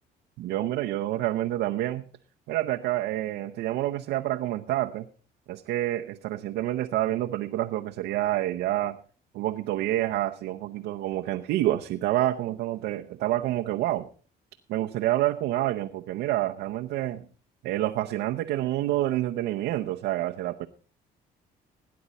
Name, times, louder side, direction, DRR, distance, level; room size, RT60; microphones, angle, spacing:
voice 1, 0.4-2.1 2.5-5.1 5.5-9.0 9.3-14.1 14.7-17.2 17.6-20.7, right 14 dB, 80° right, 4 dB, 0.7 m, -28 dB
17.5 x 9.5 x 4.2 m, 0.41 s
cardioid pair, 110°, 17 cm